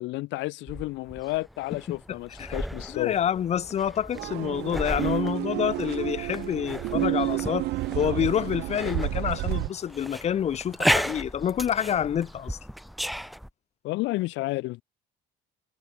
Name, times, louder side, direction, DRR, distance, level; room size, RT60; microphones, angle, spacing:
voice 1, 0.0-3.2 13.8-14.8, left 20 dB, 75° left, 2.0 m, -31 dB
sound 1, 0.7-13.5, equal, ahead, 3.2 m, -35 dB
voice 2, 2.9-7.7 7.9-12.6, left 9 dB, 35° left, 1.5 m, -28 dB
sound 2, 4.1-9.7, right 19 dB, 60° right, 0.5 m, -30 dB
cardioid pair, 150°, 19 cm